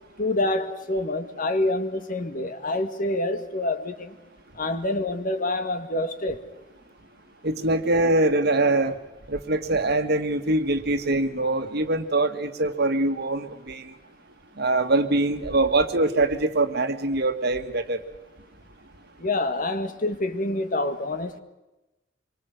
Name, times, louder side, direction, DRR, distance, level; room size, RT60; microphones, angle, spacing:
voice 1, 0.2-4.2 4.6-6.4 19.2-21.4, left 2 dB, 45° left, 1.9 m, -27 dB
voice 2, 7.4-9.0 9.3-13.9 14.6-18.0, right 2 dB, 60° right, 1.8 m, -23 dB
26.5 x 23.5 x 6.6 m
head